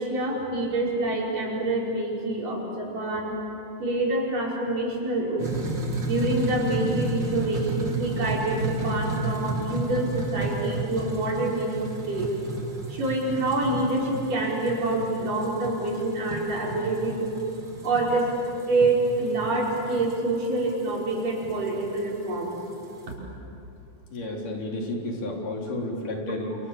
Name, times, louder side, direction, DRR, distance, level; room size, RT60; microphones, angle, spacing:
voice 1, 0.0-3.4 3.8-5.5 6.0-12.3 12.9-17.4 17.8-18.3 18.7-22.5, right 2 dB, 85° right, -4 dB, 6.8 m, -26 dB
sound 1, 5.4-23.1, right 3 dB, 35° right, 3.2 m, -33 dB
voice 2, 24.1-26.6, left 1 dB, 75° left, -1 dB, 5.3 m, -31 dB
28.5 x 28.0 x 7.3 m, 2.9 s
omnidirectional pair, 3.7 m